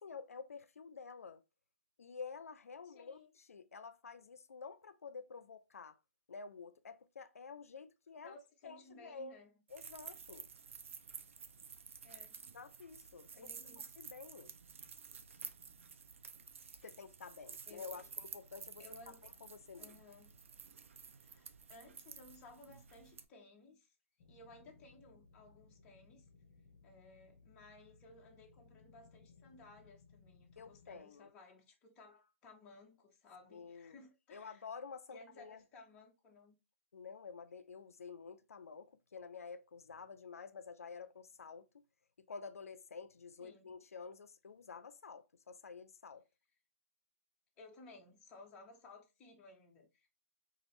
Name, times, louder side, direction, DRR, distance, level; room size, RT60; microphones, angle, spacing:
voice 1, 0.0-1.4 2.0-6.0 6.3-8.4 8.6-9.4 9.7-10.5 12.5-13.5 13.8-14.5 16.8-19.2 19.4-20.0 30.6-31.3 33.5-34.0 34.3-35.6 36.9-41.7 42.3-46.2, left 5 dB, 85° left, 0.4 m, -50 dB
voice 2, 2.8-3.3 8.2-9.6 12.0-12.4 13.3-13.9 16.6-16.8 17.7-18.1 18.8-19.3 19.8-20.5 21.0-23.9 24.3-26.3 26.8-34.6 35.1-36.6 43.4-43.8 47.6-50.1, left 2 dB, 10° left, 0.4 m, -59 dB
sound 1, 9.7-23.2, right 6 dB, 60° right, 0.4 m, -52 dB
sound 2, 24.2-31.0, left 4 dB, 25° left, 0.8 m, -64 dB
2.9 x 2.4 x 3.0 m
hypercardioid pair, 160°, 8 cm